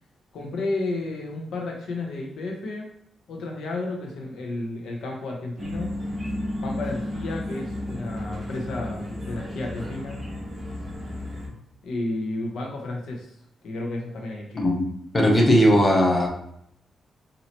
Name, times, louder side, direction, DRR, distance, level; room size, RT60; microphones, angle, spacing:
voice 1, 0.3-2.9 3.3-5.9 6.6-10.2 11.8-13.3 13.6-14.7, left 2 dB, 80° left, 1 dB, 0.8 m, -32 dB
sound 1, 5.6-11.5, left 1 dB, 20° right, 1.0 m, -33 dB
voice 2, 15.1-16.3, equal, 20° left, -1 dB, 0.7 m, -18 dB
4.2 x 2.7 x 2.9 m, 0.71 s
wide cardioid pair, 135°, 0 cm